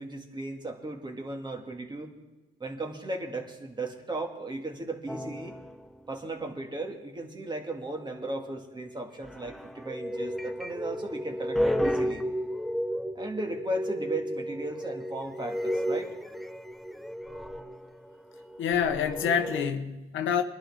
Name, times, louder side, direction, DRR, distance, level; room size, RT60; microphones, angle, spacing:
voice 1, 0.0-2.1 2.6-5.6 6.1-12.2 13.2-16.1, right 2 dB, 20° right, 2.0 m, -36 dB
sound 1, 5.1-5.9 7.6-8.4 9.2-19.7, equal, ahead, 0.6 m, -33 dB
voice 2, 18.6-20.4, left 8 dB, 75° left, 1.1 m, -27 dB
21.0 x 11.0 x 3.6 m
cardioid pair, 90°, 20 cm